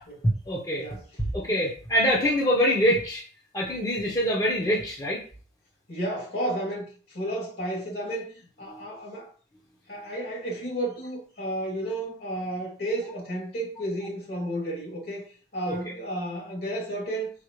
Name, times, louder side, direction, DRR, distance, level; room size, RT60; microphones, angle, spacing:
voice 1, 0.5-0.8 1.3-3.2 3.5-5.2 15.7-15.8, equal, 20° left, 1.2 m, -24 dB
voice 2, 5.9-9.3 9.9-17.3, right 1 dB, 60° left, 3.0 m, -32 dB
5.6 x 5.6 x 3.2 m
head